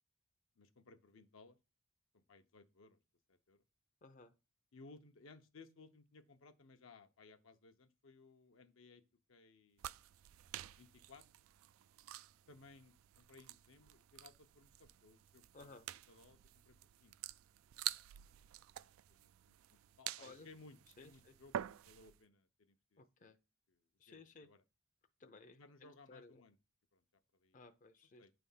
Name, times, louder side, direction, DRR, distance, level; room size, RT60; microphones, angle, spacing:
voice 1, 0.6-1.6 2.1-3.0 3.3-3.6 4.7-9.0 9.3-9.8 10.8-11.2 12.5-15.8 16.1-16.4 16.7-17.2 18.9-23.3 23.7-24.6 25.6-26.6 26.9-27.0 27.3-27.6 28.2-28.3, left 3 dB, 70° left, 0.7 m, -62 dB
voice 2, 4.0-4.3 15.5-15.9 20.2-20.5 21.0-21.3 23.0-23.4 24.0-24.5 25.2-26.4 27.5-28.3, left 3 dB, 40° left, 0.6 m, -58 dB
sound 1, 9.8-22.2, right 12 dB, 80° right, 0.3 m, -49 dB
9.1 x 3.4 x 5.5 m
head